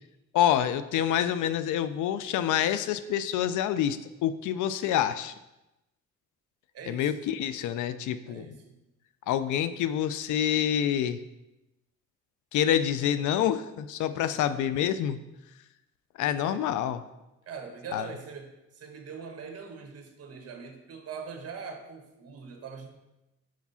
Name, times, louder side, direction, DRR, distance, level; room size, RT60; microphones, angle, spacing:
voice 1, 0.3-5.3 6.9-8.5 9.3-11.2 12.5-15.2 16.2-17.0 17.9-18.1, left 10 dB, 80° left, 13 dB, 0.5 m, -27 dB
voice 2, 6.7-7.2 8.3-8.8 14.1-14.6 16.2-16.7 17.5-22.9, right 5 dB, 55° right, 4 dB, 1.2 m, -43 dB
4.8 x 4.6 x 5.6 m, 0.96 s
cardioid pair, 90°, 30 cm